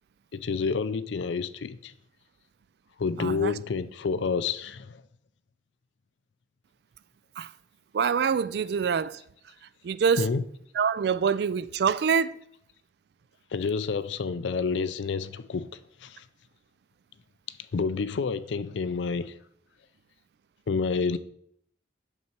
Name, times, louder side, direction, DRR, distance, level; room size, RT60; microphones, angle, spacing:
voice 1, 0.3-1.9 3.0-5.0 10.2-10.4 13.5-15.7 16.0-16.2 17.7-19.4 20.7-21.2, left 5 dB, 80° left, 0.4 m, -29 dB
voice 2, 3.2-3.5 7.4-7.5 7.9-9.2 9.8-10.3 10.7-12.4, right 6 dB, 60° right, 0.3 m, -25 dB
6.7 x 5.7 x 4.4 m
head